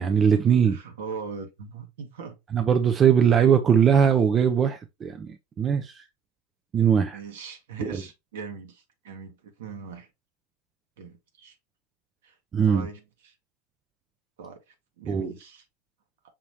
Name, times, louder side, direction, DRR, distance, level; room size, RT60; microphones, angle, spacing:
voice 1, 0.0-0.8 2.5-6.0 6.7-7.2 7.9-8.0 12.5-12.9 15.0-15.3, right 7 dB, 25° right, 0.4 m, -21 dB
voice 2, 0.7-2.3 7.1-10.1 11.0-11.5 12.2-12.3 12.6-13.3 14.4-15.6, right 5 dB, 60° right, 1.2 m, -40 dB
5.7 x 3.1 x 3.0 m
figure-of-eight pair, 90°, 0 cm